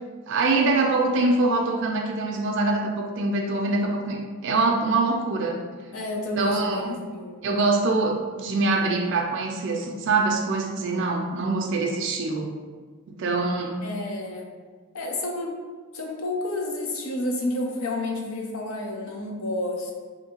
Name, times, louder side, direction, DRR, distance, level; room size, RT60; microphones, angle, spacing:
voice 1, 0.3-5.6 6.4-6.9 7.4-12.5 13.1-13.7, right 3 dB, 60° right, 1 dB, 0.3 m, -24 dB
voice 2, 5.9-7.4 13.8-14.5 14.9-15.5 15.9-19.9, left 2 dB, 80° left, 0 dB, 0.6 m, -30 dB
3.6 x 2.6 x 2.8 m, 1.5 s
head